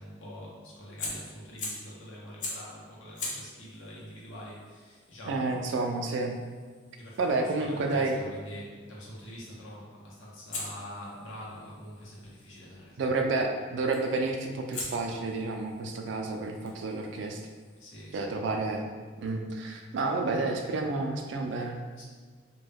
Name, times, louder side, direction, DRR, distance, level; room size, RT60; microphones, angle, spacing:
voice 1, 0.0-5.9 7.0-13.2 17.8-18.3 20.0-20.1 22.0-22.1, equal, 75° left, -5 dB, 0.7 m, -45 dB
Fire, 1.0-1.9 2.4-2.7 3.1-8.1 10.5-12.6 13.9-14.2 14.7-18.2, left 2 dB, 40° left, 0.5 m, -43 dB
voice 2, 5.2-6.4 7.2-8.2 13.0-17.4 18.1-18.9 19.2-21.8, right 3 dB, 65° right, 3 dB, 0.3 m, -30 dB
2.2 x 2.1 x 3.3 m, 1.6 s
head